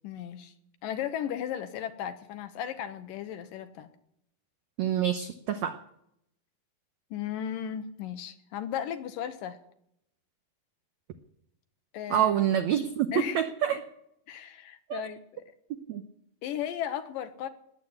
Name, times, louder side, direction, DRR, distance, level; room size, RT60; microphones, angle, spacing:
voice 1, 0.0-0.5 0.8-3.9 7.1-9.6 11.9-12.3 13.1-13.4 13.7-13.8 14.3-15.4 16.4-17.5, left 10 dB, 75° left, 10 dB, 2.4 m, -35 dB
voice 2, 4.8-5.8 12.1-13.1 13.3-13.8 14.9-15.0 15.9-16.0, right 10 dB, 85° right, 8 dB, 1.6 m, -27 dB
19.5 x 8.3 x 8.7 m, 0.77 s
omnidirectional pair, 4.3 m